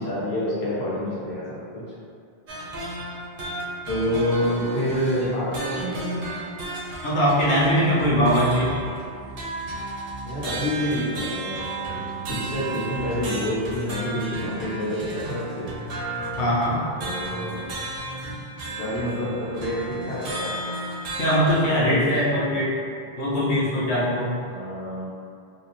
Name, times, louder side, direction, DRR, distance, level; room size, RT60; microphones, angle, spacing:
voice 1, 0.0-1.8 3.9-6.2 10.2-15.7 17.0-17.6 18.8-20.6 21.8-22.3 24.5-25.1, left 1 dB, 85° left, -8 dB, 1.1 m, -28 dB
sound 1, 2.5-21.7, right 2 dB, 65° right, 0.7 m, -33 dB
voice 2, 7.0-8.7 16.4-16.8 21.2-22.7 23.2-24.3, equal, 60° left, -7 dB, 0.7 m, -21 dB
2.6 x 2.0 x 2.9 m, 2.3 s
omnidirectional pair, 1.0 m